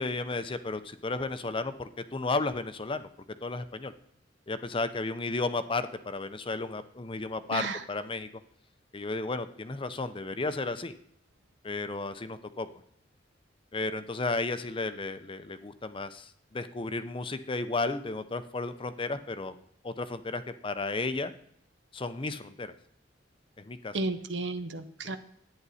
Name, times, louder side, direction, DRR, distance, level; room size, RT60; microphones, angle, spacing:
voice 1, 0.0-3.1 3.4-3.9 4.5-8.3 8.9-10.9 11.6-12.7 13.7-19.5 19.8-21.3 21.9-22.7 23.7-24.0, left 3 dB, 30° left, 11 dB, 0.6 m, -33 dB
voice 2, 23.9-25.2, right 2 dB, 70° right, 10 dB, 0.9 m, -32 dB
11.0 x 9.3 x 4.2 m, 0.68 s
head